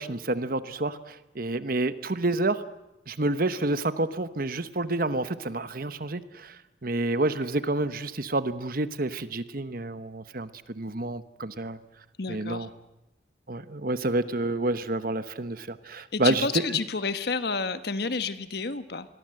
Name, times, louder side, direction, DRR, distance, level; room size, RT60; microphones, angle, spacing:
voice 1, 0.0-2.6 3.1-11.8 12.3-12.7 13.5-16.8, right 2 dB, 50° right, 12 dB, 1.1 m, -29 dB
voice 2, 12.2-12.7 16.1-19.1, left 4 dB, 55° left, 11 dB, 1.3 m, -30 dB
26.0 x 21.5 x 7.8 m, 0.95 s
head